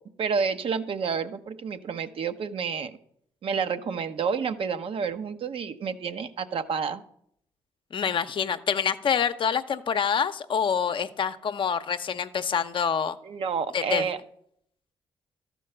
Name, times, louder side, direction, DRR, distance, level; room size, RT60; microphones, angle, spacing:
voice 1, 0.2-3.0 3.4-7.0 13.2-14.2, right 6 dB, 60° right, 9 dB, 0.7 m, -29 dB
voice 2, 7.9-13.2 13.7-14.1, left 7 dB, 55° left, 11 dB, 0.6 m, -26 dB
12.5 x 4.6 x 6.6 m, 0.70 s
supercardioid pair, 55°, 10 cm